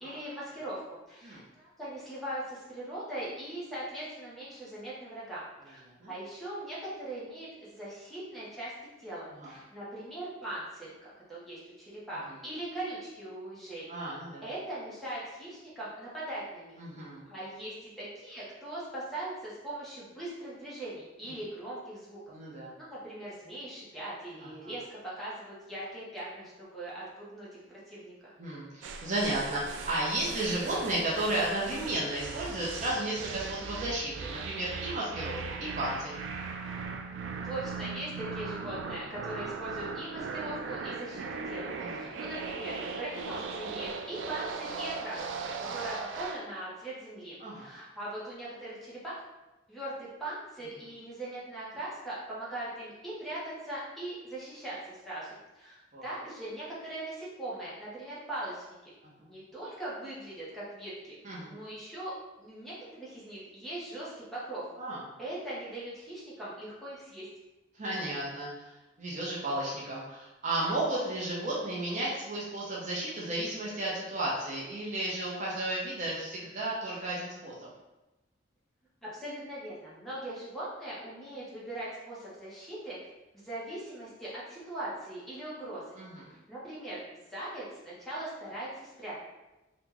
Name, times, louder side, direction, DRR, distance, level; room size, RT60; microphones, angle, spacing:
voice 1, 0.0-8.7 9.0-13.9 14.4-16.8 17.3-22.2 22.9-28.3 37.4-49.1 49.7-58.9 59.3-62.1 62.4-64.7 65.2-67.3 79.0-83.0 83.3-85.8 86.3-89.2, right 1 dB, ahead, -9 dB, 1.0 m, -40 dB
voice 2, 13.9-14.4 16.8-17.2 22.3-22.7 24.4-24.7 28.4-36.2 41.8-42.0 45.6-45.8 47.4-47.7 55.9-56.2 59.2-59.3 61.2-61.5 64.8-65.0 67.8-68.7 69.0-77.7 86.0-86.3, right 1 dB, 40° right, -6 dB, 0.7 m, -33 dB
sound 1, 28.8-46.5, right 4 dB, 75° right, 0.3 m, -39 dB
2.9 x 2.4 x 3.7 m, 1.0 s
head